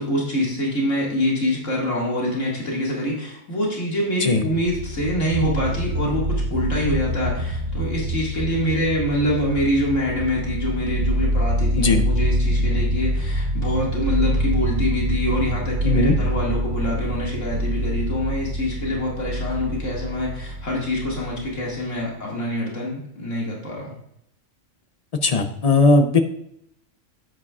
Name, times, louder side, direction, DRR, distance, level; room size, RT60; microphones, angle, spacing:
voice 1, 0.0-23.9, equal, 70° left, -3 dB, 2.4 m, -25 dB
sound 1, 4.6-21.7, equal, 55° right, 0.9 m, -25 dB
voice 2, 15.8-16.2 25.2-26.2, left 3 dB, 45° left, 7 dB, 0.5 m, -17 dB
8.9 x 8.5 x 2.4 m, 0.76 s
omnidirectional pair, 1.3 m